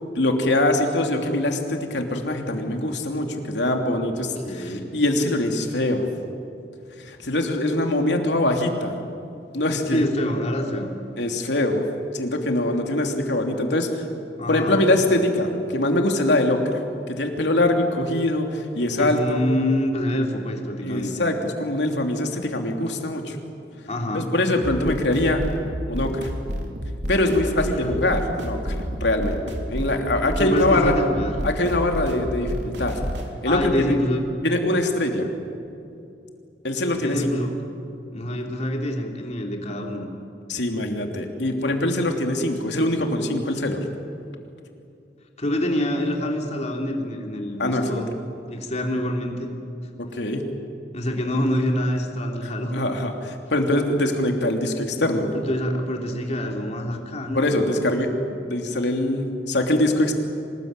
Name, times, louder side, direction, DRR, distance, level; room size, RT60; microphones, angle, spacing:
voice 1, 0.1-6.1 7.0-8.9 9.5-10.0 11.2-11.8 12.1-14.0 14.5-16.7 17.1-19.4 20.8-23.4 24.1-25.5 25.9-26.3 27.1-28.7 29.0-29.4 29.7-30.9 31.4-33.0 33.4-33.9 34.4-35.3 36.6-37.3 38.3-38.4 40.5-43.8 47.6-48.0 50.0-50.5 52.7-55.3 57.3-58.1 58.4-60.1, left 1 dB, 80° left, 3 dB, 3.0 m, -23 dB
voice 2, 4.1-4.9 9.9-10.9 14.4-14.8 19.0-21.1 23.9-24.3 27.4-28.2 30.4-31.3 33.4-34.3 36.9-37.5 38.1-40.0 45.4-48.1 48.5-49.5 50.9-52.8 55.3-57.6, left 1 dB, 40° left, 1 dB, 3.3 m, -26 dB
sound 1, 24.6-33.3, equal, 85° right, 3.4 m, -30 dB
25.5 x 20.0 x 9.0 m, 2.7 s
head